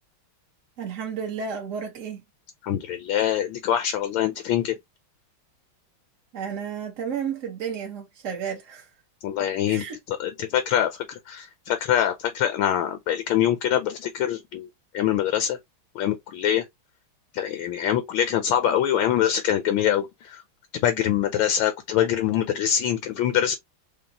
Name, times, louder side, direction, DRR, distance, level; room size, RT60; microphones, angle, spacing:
voice 1, 0.8-2.2 6.3-8.9 9.7-10.0, right 7 dB, 55° right, 0.9 m, -32 dB
voice 2, 2.6-4.7 9.2-14.7 14.9-15.6 15.9-16.6 17.3-20.4 20.7-23.6, left 10 dB, 75° left, 1.3 m, -24 dB
5.2 x 2.1 x 2.8 m
omnidirectional pair, 2.3 m